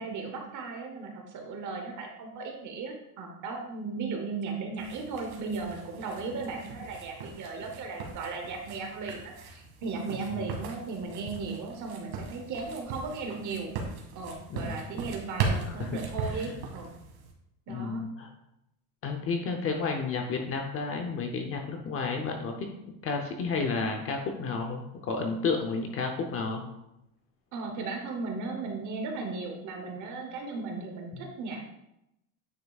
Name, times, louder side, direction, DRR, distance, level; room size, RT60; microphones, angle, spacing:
voice 1, 0.0-13.7 14.1-16.9 17.7-18.0 27.5-31.6, right 4 dB, 40° right, 2 dB, 1.0 m, -36 dB
sound 1, 4.8-17.3, right 4 dB, 75° right, 1.9 m, -38 dB
voice 2, 14.5-14.8 15.7-15.9 16.2-16.3 17.7-18.3 19.0-22.7 23.0-26.6 31.1-31.2, left 4 dB, 30° left, 3 dB, 0.7 m, -31 dB
9.5 x 5.7 x 2.4 m, 0.84 s
cardioid pair, 160°, 45 cm